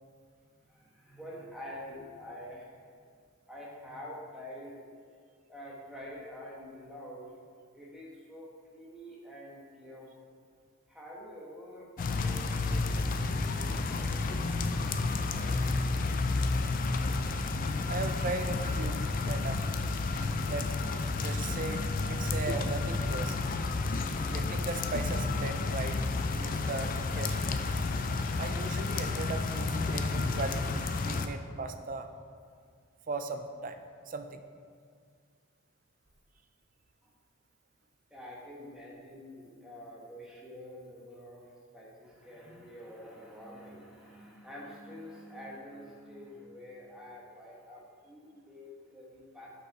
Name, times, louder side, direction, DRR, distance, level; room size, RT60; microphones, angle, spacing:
voice 1, 0.7-2.8 3.5-4.8 5.5-7.3 7.7-10.1 10.9-15.8 20.2-20.3 21.1-21.4 37.0-37.1 38.1-41.5 41.7-49.5, left 1 dB, 5° right, -5 dB, 1.1 m, -47 dB
sound 1, 12.0-31.3, left 3 dB, 40° left, 0.3 m, -31 dB
voice 2, 17.9-19.7 20.5-20.8 21.1-21.8 22.1-23.6 24.3-26.0 26.3-27.6 28.4-32.1 33.1-34.4, right 3 dB, 35° right, 8 dB, 0.4 m, -38 dB
6.3 x 5.6 x 4.6 m, 2.1 s
head